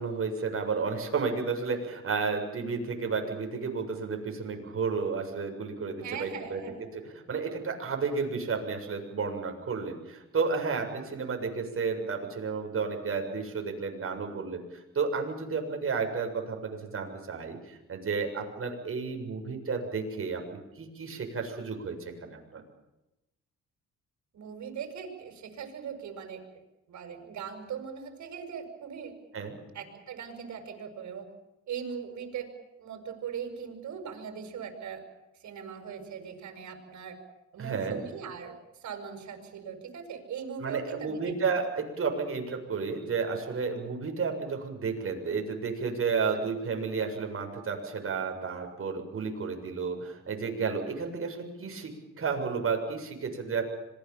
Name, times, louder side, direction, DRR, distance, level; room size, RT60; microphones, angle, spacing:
voice 1, 0.0-6.6 6.9-20.4 20.8-22.6 29.3-29.6 37.6-38.0 40.6-51.9 52.2-53.6, right 5 dB, 45° right, 4 dB, 7.3 m, -32 dB
voice 2, 6.0-6.8 24.3-26.6 26.9-29.2 29.7-31.3 31.7-32.5 32.8-35.0 35.4-37.2 37.5-41.3 46.3-46.4, right 7 dB, 70° right, 6 dB, 7.1 m, -40 dB
26.0 x 21.5 x 7.4 m, 0.94 s
cardioid pair, 90°, 30 cm